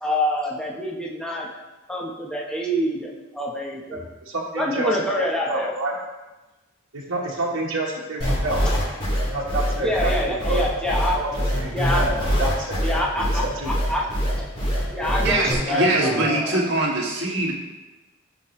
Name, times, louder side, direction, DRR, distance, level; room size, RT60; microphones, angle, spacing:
voice 1, 0.0-1.5 1.9-4.0 4.6-5.7 9.8-11.2 11.7-12.0 12.7-14.0 14.4-16.6, left 1 dB, 5° left, -3 dB, 1.0 m, -26 dB
voice 2, 3.9-5.9 6.9-8.6 9.3-10.7 11.1-11.3 11.5-13.7 15.0-15.1 15.7-16.3, right 2 dB, 80° right, -5 dB, 1.3 m, -28 dB
sound 1, 8.2-15.5, equal, 25° left, 2.6 m, -23 dB
voice 3, 15.2-17.5, right 2 dB, 60° right, -4 dB, 2.1 m, -23 dB
14.0 x 5.4 x 3.2 m, 1.1 s
head